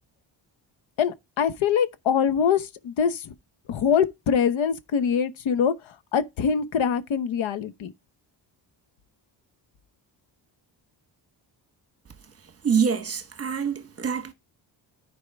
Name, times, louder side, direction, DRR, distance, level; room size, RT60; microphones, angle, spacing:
voice 1, 1.0-3.3 3.7-7.9, left 7 dB, 85° left, 1.0 m, -24 dB
voice 2, 12.6-14.3, right 6 dB, 30° right, 1.1 m, -25 dB
13.5 x 4.7 x 3.4 m
cardioid pair, 135°, 46 cm